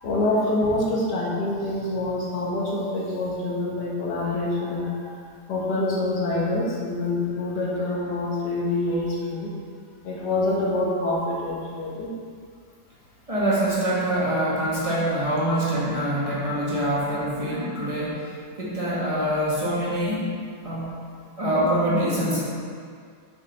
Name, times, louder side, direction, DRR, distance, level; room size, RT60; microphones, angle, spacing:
voice 1, 0.0-5.1 5.5-9.5 10.0-12.1 15.8-15.9 16.6-16.7 17.5-17.9, left 2 dB, 75° left, -4 dB, 1.7 m, -26 dB
voice 2, 13.3-18.2 18.6-20.3 20.6-20.9 21.4-22.4, right 1 dB, 20° right, -8 dB, 1.2 m, -24 dB
6.4 x 5.1 x 3.3 m, 2.1 s
omnidirectional pair, 1.9 m